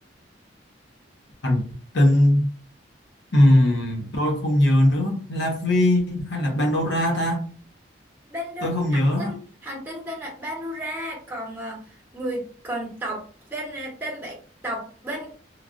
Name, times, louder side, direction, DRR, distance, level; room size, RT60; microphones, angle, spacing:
voice 1, 1.9-2.5 3.3-7.4 8.6-9.3, left 1 dB, 80° left, 2 dB, 0.8 m, -20 dB
voice 2, 8.3-13.3 13.5-14.4 14.6-15.3, right 1 dB, 10° right, -3 dB, 0.9 m, -33 dB
3.1 x 2.3 x 2.4 m, 0.42 s
head